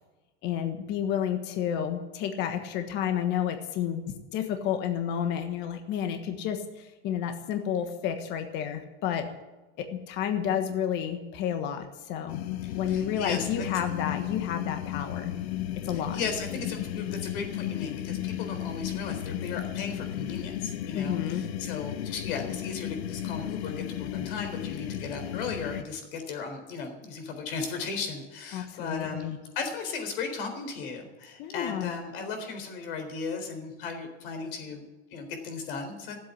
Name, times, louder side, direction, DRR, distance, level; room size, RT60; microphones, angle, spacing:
voice 1, 0.4-9.3 9.8-12.4 12.7-15.4 15.8-16.2 20.9-21.4 28.5-29.4 31.4-31.9, left 9 dB, 35° left, 6 dB, 1.3 m, -31 dB
sound 1, 12.3-25.8, left 12 dB, 90° left, 1.1 m, -34 dB
voice 2, 12.6-13.7 15.9-34.9 35.1-36.2, left 5 dB, 60° left, 5 dB, 4.0 m, -36 dB
15.0 x 8.2 x 9.7 m, 1.1 s
supercardioid pair, 165°, 31 cm